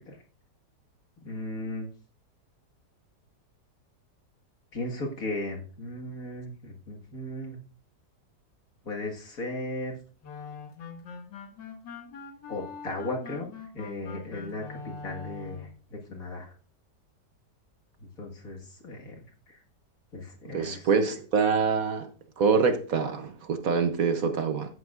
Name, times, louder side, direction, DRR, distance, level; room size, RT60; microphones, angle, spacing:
voice 1, 1.2-1.9 4.7-7.6 8.9-10.0 12.5-13.5 13.7-14.8 15.0-16.5 18.0-19.2 19.5-19.6 20.1-20.9, left 2 dB, 50° left, 2.2 m, -36 dB
sound 1, 10.2-15.8, left 5 dB, 80° left, 2.2 m, -43 dB
voice 2, 20.4-22.1 22.4-24.7, right 5 dB, 60° right, 1.2 m, -25 dB
13.5 x 9.9 x 2.5 m
omnidirectional pair, 1.9 m